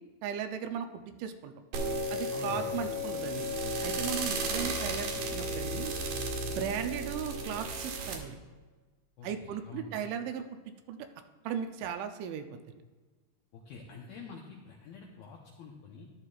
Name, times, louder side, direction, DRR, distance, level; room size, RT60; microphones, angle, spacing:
voice 1, 0.2-1.5 2.1-3.5 3.8-5.9 6.4-8.4 9.2-10.4 10.9-11.1 11.4-12.6, right 8 dB, 80° right, 6 dB, 3.0 m, -37 dB
sound 1, 1.7-8.2, right 1 dB, 65° right, 3.7 m, -34 dB
voice 2, 2.3-2.8 9.2-9.9 13.5-16.1, left 4 dB, 80° left, -1 dB, 2.1 m, -47 dB
14.0 x 11.5 x 2.4 m, 1.3 s
omnidirectional pair, 5.4 m